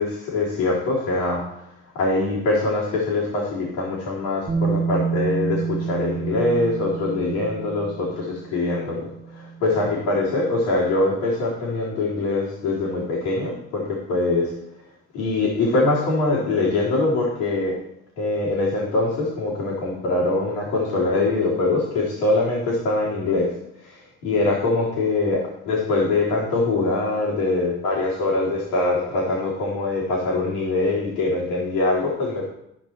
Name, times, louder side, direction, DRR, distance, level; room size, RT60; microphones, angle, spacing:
voice 1, 0.0-1.4 1.9-9.1 9.3-14.5 15.1-17.8 18.2-23.5 23.8-32.5, left 2 dB, 85° left, -6 dB, 3.7 m, -23 dB
Bass guitar, 4.5-10.5, right 6 dB, 20° right, 1.7 m, -29 dB
13.5 x 5.8 x 4.6 m, 0.79 s
supercardioid pair, 80°, 32 cm